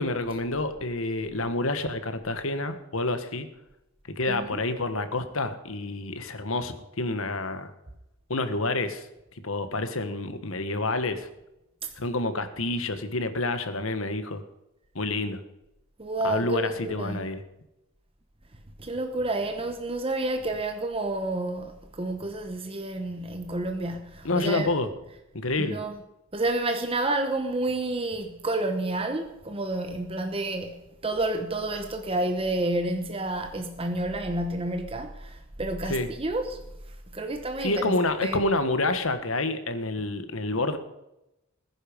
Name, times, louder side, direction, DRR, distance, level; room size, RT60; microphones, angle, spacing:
voice 1, 0.0-3.5 4.2-7.7 8.3-9.1 9.4-11.3 12.0-14.4 14.9-15.4 16.2-17.4 24.2-24.9 25.3-25.8 35.9-36.1 37.6-40.8, left 2 dB, 70° left, 1.5 m, -28 dB
voice 2, 4.3-4.6 11.8-11.9 16.0-17.2 18.8-24.7 25.6-26.0 26.3-36.6 37.1-37.9 38.2-38.4, right 2 dB, 25° right, 1.0 m, -30 dB
20.5 x 10.5 x 5.3 m
head